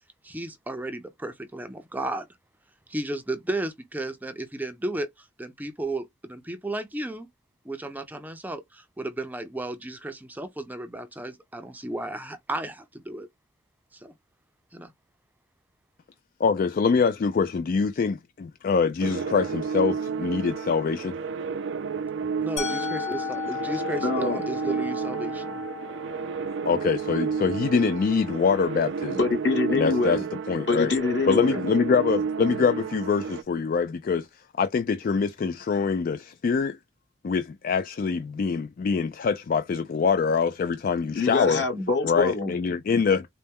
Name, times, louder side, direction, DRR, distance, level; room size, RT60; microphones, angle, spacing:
voice 1, 0.2-2.3 2.9-7.3 7.6-13.3 13.9-14.1 14.7-14.9 22.2-25.6, right 1 dB, 10° right, 0.5 m, -34 dB
voice 2, 16.4-21.2 26.6-29.2 29.7-30.2 30.5-30.9 31.3-34.3 34.6-36.8 37.2-41.6 42.0-43.3, left 5 dB, 50° left, 0.3 m, -24 dB
sound 1, 19.0-33.4, right 6 dB, 75° right, 0.4 m, -31 dB
Musical instrument, 22.6-28.5, left 8 dB, 85° left, 1.7 m, -36 dB
voice 3, 24.0-24.4 29.1-30.2 30.7-31.6 41.1-42.5, left 3 dB, 65° left, 2.0 m, -25 dB
4.2 x 2.1 x 3.5 m
head